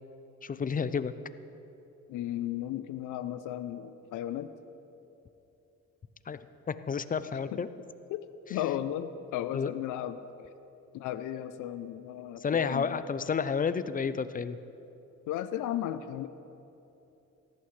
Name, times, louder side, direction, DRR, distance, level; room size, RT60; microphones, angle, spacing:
voice 1, 0.4-1.1 6.3-6.4 6.7-7.7 9.5-9.7 12.4-14.6, left 6 dB, 30° left, 13 dB, 0.5 m, -30 dB
voice 2, 2.1-4.5 8.1-8.2 8.5-10.5 10.9-13.0 15.3-16.3, left 11 dB, 85° left, 12 dB, 0.6 m, -35 dB
18.0 x 14.0 x 3.3 m, 2.9 s
cardioid pair, 90°, 30 cm